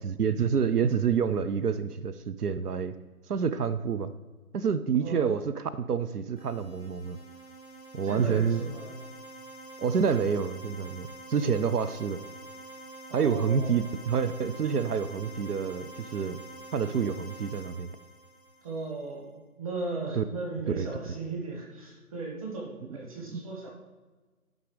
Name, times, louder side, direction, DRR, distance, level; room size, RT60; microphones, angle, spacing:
voice 1, 0.0-2.9 3.3-4.1 4.5-7.2 7.9-8.6 9.8-12.2 13.1-16.4 16.7-17.9 20.1-20.2 20.8-20.9 23.2-23.4, right 6 dB, 85° right, 12 dB, 0.6 m, -28 dB
voice 2, 5.0-5.4 8.0-9.0 13.1-13.8 18.6-23.7, right 3 dB, 25° right, -2 dB, 1.5 m, -37 dB
sound 1, 6.4-19.1, right 2 dB, ahead, 0.8 m, -47 dB
12.0 x 5.2 x 3.2 m, 1.3 s
figure-of-eight pair, 155°, 45 cm